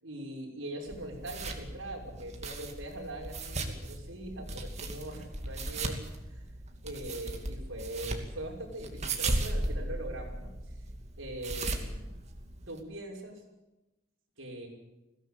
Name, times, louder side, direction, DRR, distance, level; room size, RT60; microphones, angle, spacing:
voice 1, 0.0-6.4 6.8-10.8 11.2-12.1 12.7-13.4 14.4-14.7, right 1 dB, 70° right, 0 dB, 6.1 m, -42 dB
sound 1, 0.9-12.8, right 2 dB, 35° right, 2.6 m, -37 dB
21.0 x 17.0 x 8.5 m, 0.99 s
head